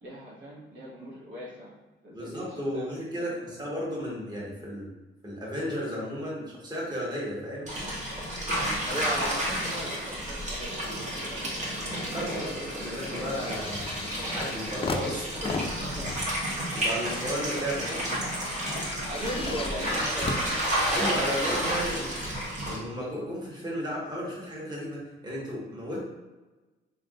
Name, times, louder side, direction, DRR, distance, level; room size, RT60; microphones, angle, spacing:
voice 1, 0.0-1.7 2.0-3.6 8.8-12.1 15.7-16.3 19.1-20.5, equal, 70° right, -6 dB, 1.4 m, -39 dB
voice 2, 2.1-4.9 5.2-7.7 12.1-13.9 14.3-15.7 16.5-18.1 20.9-22.1 22.6-26.1, equal, 20° right, -5 dB, 1.3 m, -34 dB
sound 1, 7.7-22.8, equal, 35° right, 1.4 m, -31 dB
sound 2, 10.8-11.5 11.8-21.2 22.0-22.1, left 3 dB, 30° left, 0.4 m, -38 dB
3.6 x 3.6 x 2.4 m, 1.2 s
cardioid pair, 90°, 20 cm